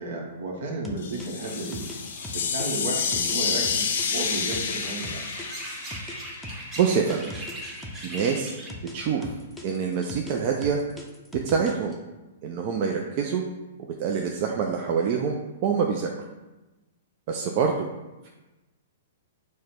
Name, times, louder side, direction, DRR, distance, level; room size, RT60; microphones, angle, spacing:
voice 1, 0.0-1.8 2.3-5.2, right 2 dB, 70° right, 0 dB, 1.0 m, -33 dB
sound 1, 0.8-5.5 5.9-9.0 9.2-11.9, left 1 dB, 5° left, 0.5 m, -41 dB
sound 2, 1.0-6.9, left 6 dB, 70° left, 0.5 m, -29 dB
sound 3, 1.4-8.7, right 1 dB, 15° right, 1.0 m, -41 dB
voice 2, 6.8-7.3 8.0-8.6 8.9-9.3 9.6-10.8 11.4-12.0 12.4-13.4 14.0-16.1 17.3-17.9, right 6 dB, 45° right, 1 dB, 0.4 m, -25 dB
4.7 x 2.1 x 4.3 m, 1.1 s
hypercardioid pair, 135°, 0 cm